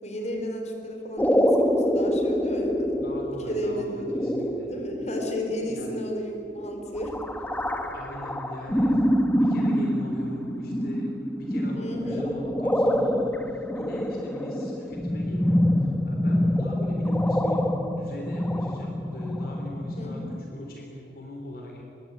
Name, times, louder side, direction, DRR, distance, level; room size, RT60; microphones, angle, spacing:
voice 1, 0.0-2.9 3.5-4.2 4.6-7.2 11.7-12.3 20.0-20.3, equal, 40° left, 3 dB, 4.4 m, -33 dB
sound 1, 1.2-20.4, equal, 10° left, 1.5 m, -26 dB
voice 2, 2.9-4.7 5.7-5.9 7.8-9.1 9.3-21.8, left 1 dB, 55° left, 1 dB, 3.4 m, -40 dB
24.5 x 22.0 x 8.6 m, 2.7 s
head